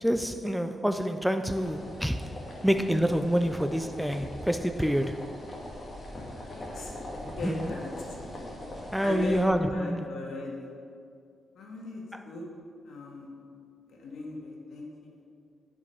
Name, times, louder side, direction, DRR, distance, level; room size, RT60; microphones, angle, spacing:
voice 1, 0.0-2.3 2.6-5.3 7.4-7.7 8.9-10.1 12.1-12.2, equal, ahead, 8 dB, 0.3 m, -27 dB
sound 1, 1.5-9.4, left 1 dB, 25° left, 1.8 m, -41 dB
voice 2, 6.1-8.2 9.0-10.7 11.5-12.5 12.8-13.3 13.9-15.2, left 1 dB, 70° left, -1 dB, 1.8 m, -39 dB
13.0 x 5.2 x 5.5 m, 2.3 s
wide cardioid pair, 160°, 0 cm